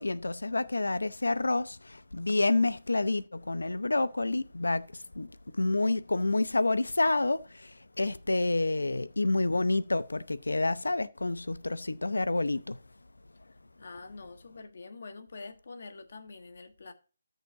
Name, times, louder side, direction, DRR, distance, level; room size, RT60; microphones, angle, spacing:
voice 1, 0.0-4.8 5.2-5.3 5.6-7.7 8.0-12.8, left 2 dB, 85° left, 0.7 m, -28 dB
voice 2, 8.3-9.1 13.8-16.9, left 3 dB, 60° left, 1.4 m, -46 dB
14.0 x 6.6 x 2.8 m
figure-of-eight pair, 155°, 0 cm